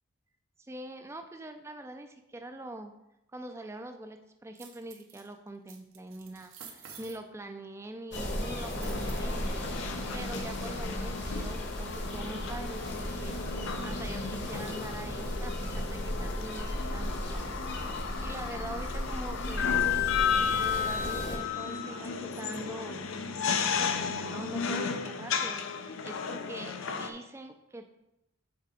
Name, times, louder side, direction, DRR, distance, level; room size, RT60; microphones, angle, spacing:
voice 1, 0.7-2.9 3.3-19.9 20.5-23.0 23.7-27.9, right 1 dB, 15° right, 6 dB, 0.3 m, -44 dB
sound 1, 4.6-5.3 5.7-7.2 8.7-9.5, right 7 dB, 75° right, 0.9 m, -49 dB
sound 2, 8.1-21.4, equal, 55° left, 1.1 m, -36 dB
sound 3, 8.7-27.1, left 6 dB, 75° left, 0.5 m, -34 dB
5.7 x 3.8 x 4.9 m, 0.88 s
head